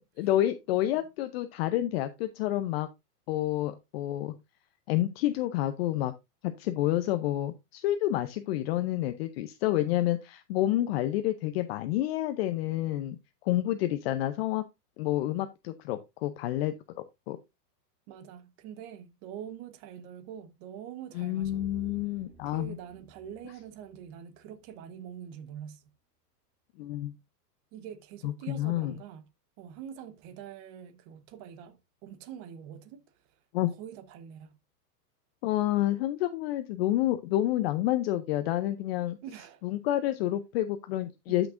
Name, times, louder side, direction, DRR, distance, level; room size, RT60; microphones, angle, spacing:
voice 1, 0.0-2.9 3.3-4.3 4.9-6.1 6.4-13.2 13.4-14.6 15.0-16.7 17.3-17.4 21.1-22.8 26.8-27.1 28.2-28.9 33.5-33.7 35.4-39.2 39.6-41.5, left 14 dB, 40° left, 0.6 m, -29 dB
voice 2, 18.1-21.6 22.4-25.8 27.7-29.3 29.6-33.0 33.8-34.6 39.2-39.6 41.3-41.4, right 9 dB, 35° right, 1.1 m, -45 dB
sound 1, 21.4-24.8 25.1-25.2, right 3 dB, 15° right, 4.4 m, -52 dB
13.0 x 6.0 x 2.5 m
hypercardioid pair, 145°, 49 cm